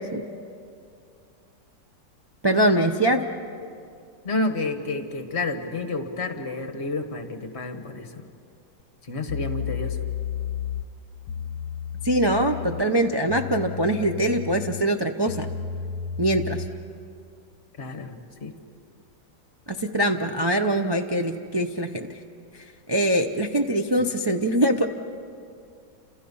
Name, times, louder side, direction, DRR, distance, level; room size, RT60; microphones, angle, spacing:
voice 1, 2.4-3.2 12.0-15.5 16.2-16.6 19.7-22.1 22.9-24.9, right 1 dB, 30° right, 2 dB, 0.4 m, -23 dB
voice 2, 4.2-8.2 9.1-10.0 17.8-18.5, left 2 dB, 40° left, 6 dB, 1.7 m, -30 dB
sound 1, 8.8-8.9 9.3-16.8, left 8 dB, 65° left, 1.5 m, -33 dB
30.0 x 27.5 x 5.6 m, 2.4 s
omnidirectional pair, 1.9 m